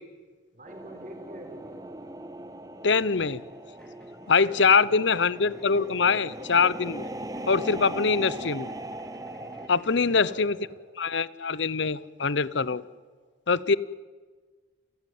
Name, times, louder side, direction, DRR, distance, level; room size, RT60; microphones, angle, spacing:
voice 1, 0.5-1.8 4.2-5.2 9.6-10.7 13.2-13.4, right 1 dB, 45° right, 4 dB, 4.7 m, -47 dB
sound 1, 0.7-9.7, right 1 dB, 20° right, 1.5 m, -39 dB
voice 2, 2.8-3.4 4.3-7.0 7.5-8.7 9.7-10.5 11.0-12.8 13.5-13.8, left 5 dB, 70° left, 19 dB, 0.8 m, -23 dB
sound 2, 3.1-10.4, equal, 5° left, 3.4 m, -54 dB
29.5 x 15.0 x 9.4 m, 1.4 s
head